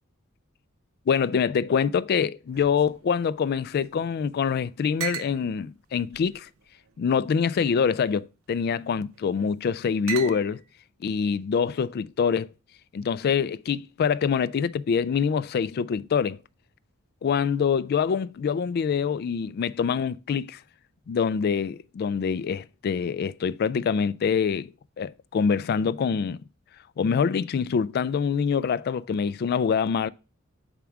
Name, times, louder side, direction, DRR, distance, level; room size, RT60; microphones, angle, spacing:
voice 1, 1.1-6.5 7.0-10.6 11.0-12.5 12.9-16.4 17.2-20.6 21.1-24.7 25.0-26.4 27.0-30.1, left 6 dB, 50° left, 0.3 m, -25 dB
sound 1, 2.5-4.1 4.4-4.5 5.0-5.4 6.1-7.0 7.8-8.2 9.1-9.5 10.1-10.7, right 11 dB, 90° right, 0.7 m, -39 dB
7.1 x 3.6 x 4.5 m
head